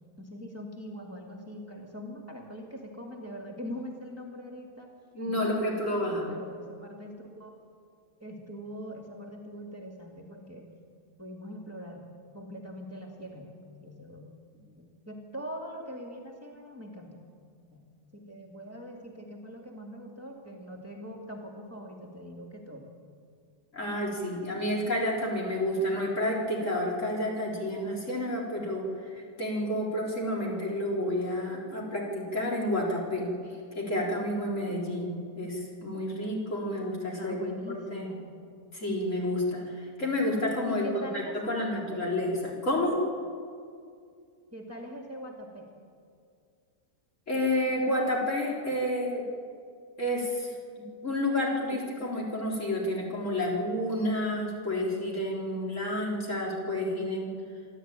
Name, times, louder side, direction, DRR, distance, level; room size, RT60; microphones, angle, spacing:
voice 1, 0.2-4.9 5.3-7.5 8.2-10.7 11.2-14.3 14.8-17.2 17.7-17.8 18.1-22.9 29.6-29.8 37.2-38.3 40.6-42.1 44.5-45.7, equal, 10° right, 0 dB, 2.2 m, -42 dB
voice 2, 5.1-6.3 23.7-28.9 29.1-33.3 33.7-37.4 37.7-38.1 38.7-40.9 41.1-43.0 47.3-49.2 50.0-50.5 50.8-57.3, left 1 dB, 50° left, -3 dB, 4.5 m, -30 dB
26.0 x 12.0 x 9.0 m, 2.3 s
omnidirectional pair, 1.7 m